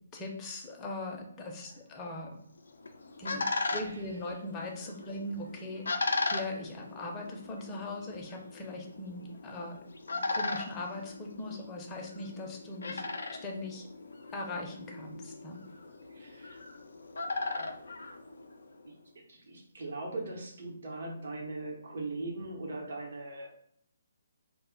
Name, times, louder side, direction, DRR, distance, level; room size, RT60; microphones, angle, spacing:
voice 1, 0.1-2.4 3.2-9.8 10.1-13.9 14.3-15.6, left 2 dB, 20° left, 0 dB, 0.5 m, -40 dB
sound 1, 2.6-18.8, left 3 dB, 75° left, 0.3 m, -38 dB
voice 2, 16.1-16.6 17.5-18.1 18.8-19.0 19.3-23.5, right 2 dB, 65° right, -1 dB, 0.8 m, -40 dB
2.1 x 2.0 x 3.7 m, 0.66 s
figure-of-eight pair, 145°, 0 cm